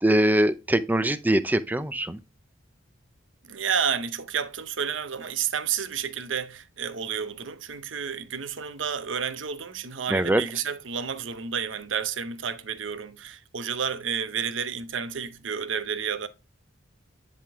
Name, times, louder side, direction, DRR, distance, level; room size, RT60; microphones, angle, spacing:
voice 1, 0.0-2.2 10.1-10.4, right 1 dB, 10° right, 0.5 m, -22 dB
voice 2, 3.5-16.3, right 7 dB, 80° right, 0.8 m, -30 dB
10.0 x 3.6 x 3.5 m
head